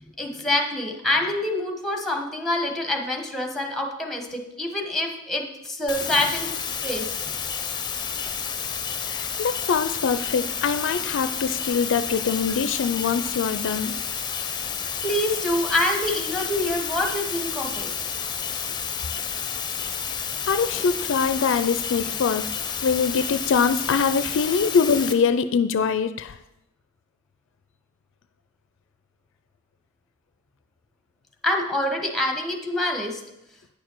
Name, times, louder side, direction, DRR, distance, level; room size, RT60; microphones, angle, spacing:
voice 1, 0.2-7.1 15.0-17.9 20.8-20.9 31.4-33.2, left 1 dB, ahead, 2 dB, 1.2 m, -26 dB
sound 1, 5.9-25.1, left 7 dB, 20° left, 0.6 m, -30 dB
voice 2, 9.1-13.9 20.5-22.4 22.8-26.4, left 5 dB, 65° left, 12 dB, 0.4 m, -23 dB
9.4 x 6.6 x 4.6 m, 0.89 s
head